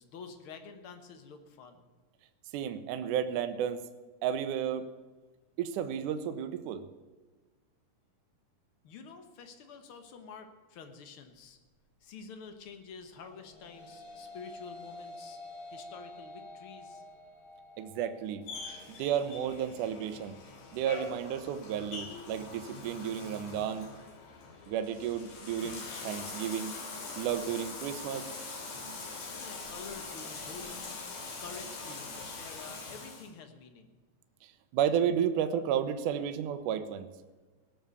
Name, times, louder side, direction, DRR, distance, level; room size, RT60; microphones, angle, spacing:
voice 1, 0.0-1.9 8.8-11.6 12.0-15.4 15.7-17.0 29.3-30.9 31.4-33.9, left 5 dB, 55° left, 7 dB, 1.5 m, -48 dB
voice 2, 2.5-3.8 4.2-4.9 5.6-6.8 17.8-18.5 18.9-20.4 20.7-23.9 24.7-26.7 27.2-28.3 34.4-37.1, right 9 dB, 75° right, 10 dB, 2.2 m, -32 dB
sound 1, 13.2-22.3, left 2 dB, 35° left, 4.9 m, -50 dB
Bathtub (filling or washing), 18.4-33.3, left 3 dB, 75° left, 4.6 m, -43 dB
19.0 x 7.1 x 6.9 m, 1.3 s
omnidirectional pair, 3.9 m